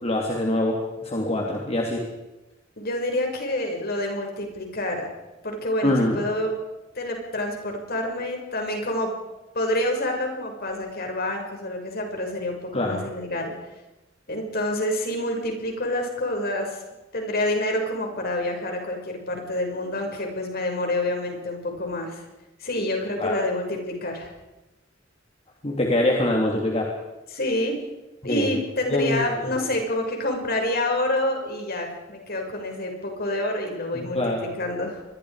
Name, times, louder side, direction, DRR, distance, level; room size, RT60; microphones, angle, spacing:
voice 1, 0.0-2.0 5.8-6.2 12.7-13.0 23.2-23.4 25.6-26.9 28.2-28.6 28.9-29.2 29.5-29.6 33.9-34.4, left 1 dB, 30° left, 0 dB, 3.1 m, -24 dB
voice 2, 2.8-5.1 5.4-6.5 6.9-9.1 9.5-13.5 14.3-16.8 17.1-22.3 22.6-24.3 27.3-27.8 28.2-35.0, left 1 dB, 50° left, 2 dB, 6.2 m, -28 dB
27.5 x 21.5 x 5.0 m, 1.0 s
head